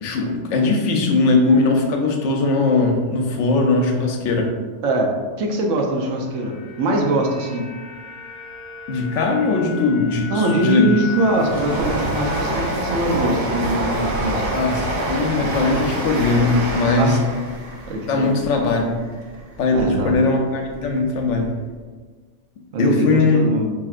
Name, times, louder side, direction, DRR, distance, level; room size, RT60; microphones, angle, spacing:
voice 1, 0.0-4.5 8.9-10.9 14.5-17.2 18.1-19.0 19.6-21.5 22.8-23.4, left 3 dB, 80° left, 2 dB, 0.9 m, -19 dB
voice 2, 5.4-7.7 10.3-14.4 17.0-17.2 17.9-18.3 19.7-20.2 22.7-23.7, right 1 dB, 85° right, 1 dB, 1.0 m, -22 dB
sound 1, 5.9-14.2 14.5-14.6, left 7 dB, 60° left, 0.4 m, -37 dB
Train, 10.0-20.2 20.6-21.5 21.7-21.8, right 1 dB, 60° right, 0.8 m, -27 dB
4.2 x 2.8 x 2.4 m, 1.4 s
omnidirectional pair, 1.3 m